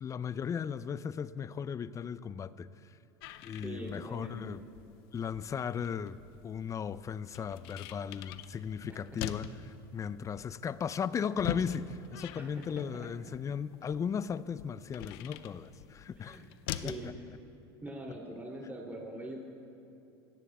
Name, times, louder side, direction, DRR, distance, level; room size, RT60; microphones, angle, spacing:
voice 1, 0.0-2.7 3.4-4.6 5.1-16.4 16.8-17.1, left 7 dB, 25° left, 16 dB, 0.4 m, -36 dB
sound 1, 3.2-17.1, left 11 dB, 65° left, 0.7 m, -44 dB
voice 2, 3.6-4.5 8.9-9.0 12.4-12.5 12.7-13.1 16.2-17.1 17.8-19.4, right 1 dB, 15° right, -1 dB, 2.9 m, -43 dB
27.0 x 17.5 x 2.4 m, 2.8 s
hypercardioid pair, 95°, 13 cm